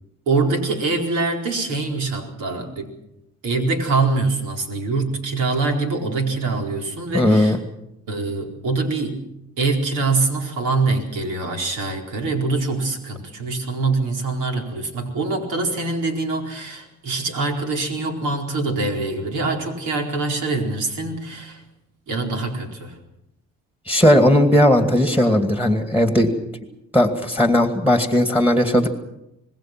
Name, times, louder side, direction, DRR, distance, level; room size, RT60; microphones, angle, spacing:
voice 1, 0.3-2.9 3.4-7.6 8.1-9.3 9.6-21.6 22.1-22.9, right 3 dB, 90° right, 2 dB, 4.5 m, -24 dB
voice 2, 7.1-7.6 23.9-26.3 26.9-28.9, left 1 dB, 5° right, 6 dB, 2.3 m, -17 dB
26.0 x 20.0 x 6.1 m, 0.84 s
cardioid pair, 90°, 30 cm